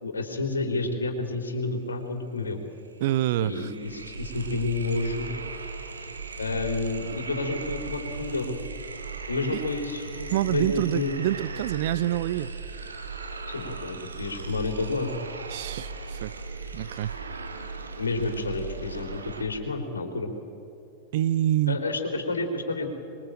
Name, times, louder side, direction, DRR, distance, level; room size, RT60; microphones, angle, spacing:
voice 1, 0.0-2.6 3.4-5.3 6.0-6.1 6.4-8.6 9.3-11.2 13.5-15.1 18.0-20.3 21.7-22.9, left 3 dB, 75° left, 4 dB, 3.7 m, -30 dB
sound 1, 2.4-2.5 2.8-19.4, right 4 dB, 75° right, 2.4 m, -38 dB
voice 2, 3.0-3.7 9.5-9.6 10.3-12.5 15.5-16.4 16.7-17.1 21.1-21.8, right 13 dB, 50° right, 18 dB, 0.7 m, -26 dB
26.0 x 23.0 x 9.0 m, 2.7 s
figure-of-eight pair, 95°, 0 cm